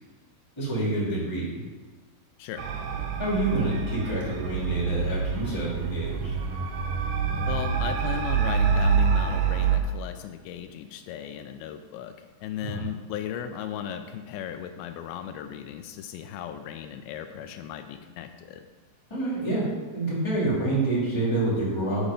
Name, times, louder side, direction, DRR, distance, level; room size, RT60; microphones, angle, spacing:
voice 1, 0.6-1.6 3.2-6.3 12.6-12.8 19.1-19.6 19.9-22.1, right 2 dB, 10° left, -7 dB, 2.0 m, -27 dB
sound 1, 2.6-9.8, right 6 dB, 80° right, 2.1 m, -26 dB
voice 2, 7.5-18.7, left 9 dB, 85° left, 8 dB, 2.3 m, -36 dB
10.0 x 4.9 x 5.2 m, 1.3 s
omnidirectional pair, 4.3 m